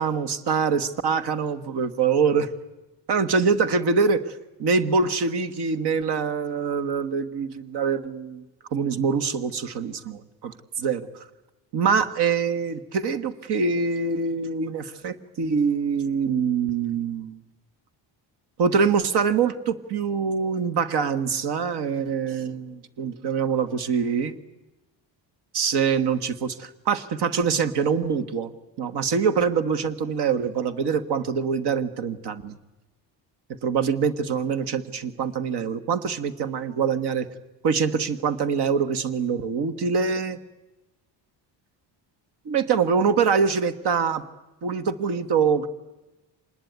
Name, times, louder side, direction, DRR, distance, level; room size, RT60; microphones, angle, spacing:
voice 1, 0.0-2.5 3.1-4.3 4.6-8.5 8.7-11.3 11.7-17.4 18.6-24.3 25.5-28.5 28.8-32.6 33.6-37.3 37.6-40.4 42.5-44.2 44.6-45.7, right 5 dB, 60° right, 12 dB, 1.6 m, -24 dB
26.0 x 20.0 x 9.5 m, 1.0 s
cardioid pair, 150°, 45 cm